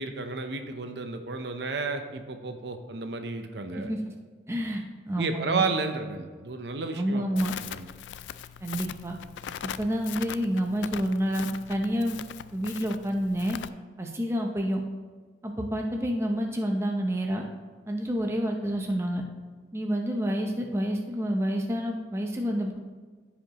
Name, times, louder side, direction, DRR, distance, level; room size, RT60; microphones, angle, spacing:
voice 1, 0.0-3.9 5.2-7.9, right 3 dB, 75° right, 6 dB, 0.7 m, -32 dB
voice 2, 4.5-5.6 6.9-7.5 8.6-9.2 9.6-12.2 12.5-13.6 14.0-14.8 15.4-17.4 17.9-19.2 19.7-22.8, equal, 15° right, 1 dB, 0.7 m, -28 dB
Crackle, 7.4-13.7, left 9 dB, 90° left, 0.3 m, -40 dB
14.5 x 5.1 x 3.0 m, 1.5 s
head